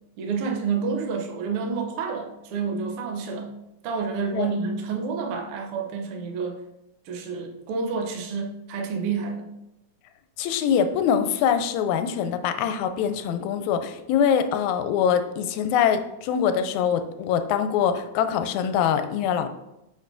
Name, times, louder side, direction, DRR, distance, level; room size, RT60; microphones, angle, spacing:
voice 1, 0.2-3.5 3.8-6.6 7.0-9.5, right 5 dB, 75° right, 2 dB, 1.3 m, -29 dB
voice 2, 10.4-19.5, left 8 dB, 80° left, 9 dB, 1.8 m, -23 dB
7.3 x 5.7 x 2.6 m, 0.89 s
omnidirectional pair, 3.5 m